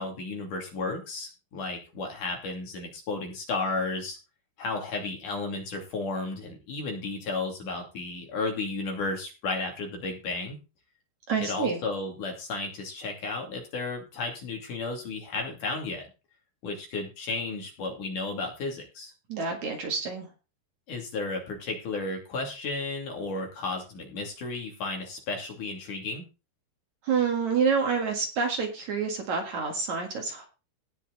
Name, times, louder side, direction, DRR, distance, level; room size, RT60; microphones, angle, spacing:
voice 1, 0.0-4.2 4.6-10.6 11.4-16.0 16.6-19.1 20.9-26.3, left 3 dB, 55° left, 2 dB, 4.0 m, -33 dB
voice 2, 11.3-11.8 19.3-20.3 27.0-30.5, right 5 dB, 55° right, 2 dB, 2.8 m, -28 dB
18.0 x 6.2 x 4.0 m, 0.30 s
omnidirectional pair, 4.6 m